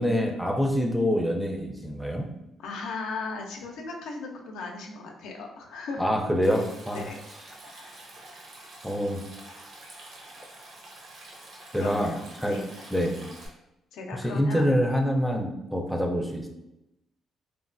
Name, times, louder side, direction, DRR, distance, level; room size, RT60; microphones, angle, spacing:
voice 1, 0.0-2.3 6.0-7.0 8.8-9.2 11.7-12.6 12.9-13.2 14.1-16.5, equal, ahead, 1 dB, 0.4 m, -26 dB
voice 2, 2.6-6.0 6.9-7.2 7.7-8.0 11.8-12.7 13.9-14.7, left 3 dB, 85° left, 1 dB, 0.4 m, -37 dB
Stream, 6.4-13.5, right 1 dB, 70° right, 0.8 m, -47 dB
3.0 x 2.1 x 2.5 m, 0.88 s
cardioid pair, 90°, 0 cm